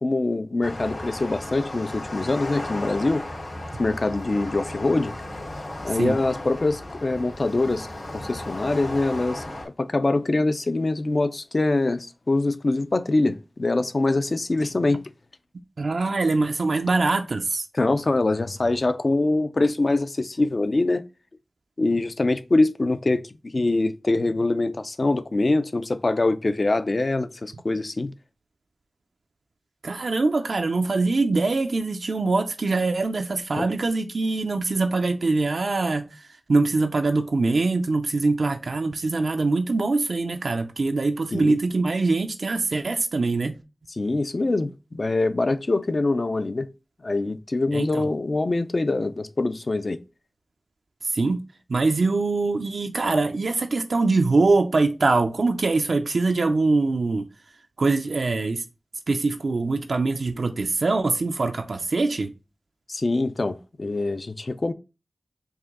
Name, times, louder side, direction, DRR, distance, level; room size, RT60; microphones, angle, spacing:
voice 1, 0.0-3.3 3.8-5.1 5.8-7.9 8.1-9.4 9.8-15.0 17.7-21.1 21.8-28.1 33.6-33.7 41.3-41.6 43.9-46.7 47.0-50.0 62.9-64.7, left 2 dB, 55° left, 0.4 m, -24 dB
sound 1, 0.6-9.6, left 1 dB, 75° left, 2.5 m, -35 dB
voice 2, 15.8-17.6 29.8-36.2 36.5-43.5 47.7-48.1 51.0-51.4 51.7-57.3 57.8-58.6 59.1-62.3, right 3 dB, 85° right, 0.4 m, -23 dB
4.8 x 2.6 x 3.6 m
wide cardioid pair, 55°, 0 cm